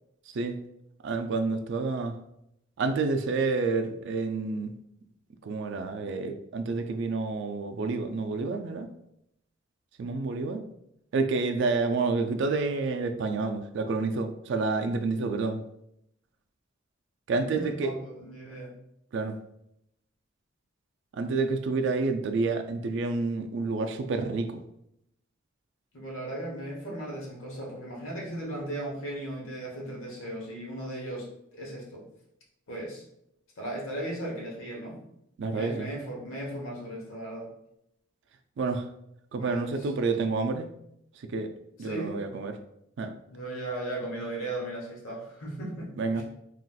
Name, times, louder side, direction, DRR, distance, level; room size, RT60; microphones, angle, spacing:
voice 1, 1.0-2.1 2.8-4.7 5.4-8.9 10.0-10.6 11.1-15.6 17.3-17.9 19.1-19.3 21.2-24.6 35.4-35.9 38.6-38.9 39.3-40.7 41.3-41.5 41.8-42.6 43.0-43.1 46.0-46.2, right 3 dB, 65° right, 7 dB, 0.4 m, -29 dB
voice 2, 17.4-18.7 25.9-31.3 31.5-32.0 32.7-33.0 33.6-35.0 35.5-37.5 39.4-39.9 41.8-42.2 43.3-46.2, right 1 dB, 90° left, -3 dB, 1.0 m, -37 dB
3.9 x 2.4 x 2.3 m, 0.79 s
head